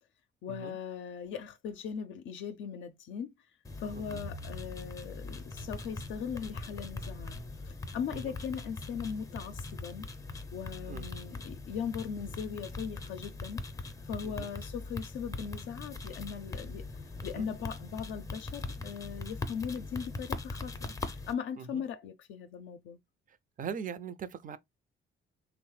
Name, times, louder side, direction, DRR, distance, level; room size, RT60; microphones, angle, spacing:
voice 1, 0.4-3.3 3.8-7.3 7.6-10.0 10.5-13.6 14.0-20.8 21.1-23.0, left 7 dB, 75° left, 0.4 m, -39 dB
sound 1, 3.6-21.3, left 3 dB, 15° left, 0.5 m, -41 dB
voice 2, 23.6-24.6, right 7 dB, 40° right, 0.4 m, -41 dB
3.1 x 2.0 x 3.1 m
cardioid pair, 90°, 20 cm